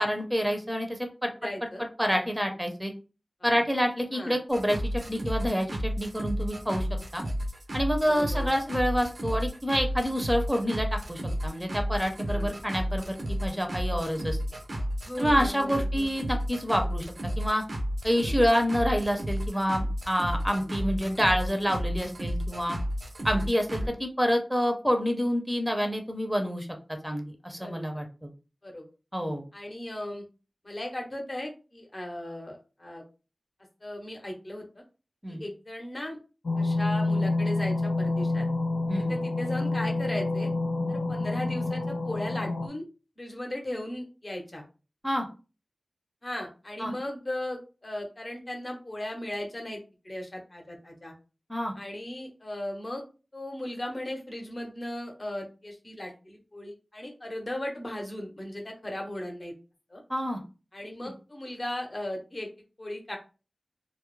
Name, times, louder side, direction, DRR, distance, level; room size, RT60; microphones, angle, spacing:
voice 1, 0.0-1.3 2.0-2.9 3.4-6.9 7.1-7.2 7.7-14.4 15.2-17.1 17.4-17.6 18.0-22.8 23.2-28.3 29.1-29.4 35.2-35.4 38.9-39.1 45.0-45.3 46.8-46.9 51.5-51.7 60.1-60.4, equal, 5° right, 4 dB, 0.6 m, -27 dB
voice 2, 1.4-1.8 3.4-3.6 4.1-4.4 8.0-8.5 12.3-12.5 15.0-16.1 18.1-18.5 23.2-23.4 23.8-23.9 27.6-27.9 28.6-28.9 29.5-30.2 30.6-33.0 33.8-34.8 35.3-36.2 36.6-38.5 38.9-40.5 40.9-42.8 43.2-44.6 46.2-51.1 51.7-53.0 53.3-59.5 59.9-60.0 60.7-62.5 62.8-63.2, left 1 dB, 40° left, 1 dB, 0.7 m, -37 dB
sound 1, 4.5-23.9, equal, 70° right, 0.5 m, -32 dB
sound 2, 36.4-42.7, left 2 dB, 85° left, 0.3 m, -28 dB
2.3 x 2.0 x 3.0 m, 0.33 s
wide cardioid pair, 55°, 0 cm